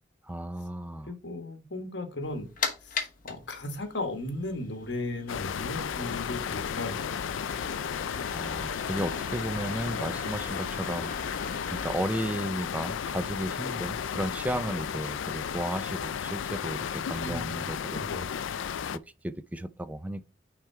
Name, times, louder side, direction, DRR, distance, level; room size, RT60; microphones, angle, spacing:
voice 1, 0.3-1.1 8.3-11.1 11.7-18.0 18.9-20.3, right 1 dB, 10° right, 0.3 m, -34 dB
voice 2, 1.1-2.5 2.8-7.3 7.7-7.8 17.2-18.3, left 2 dB, 60° left, 1.3 m, -36 dB
sound 1, 2.2-11.9, left 5 dB, 45° left, 1.1 m, -40 dB
sound 2, 5.3-19.0, left 7 dB, 85° left, 0.4 m, -34 dB
6.0 x 3.5 x 4.6 m
head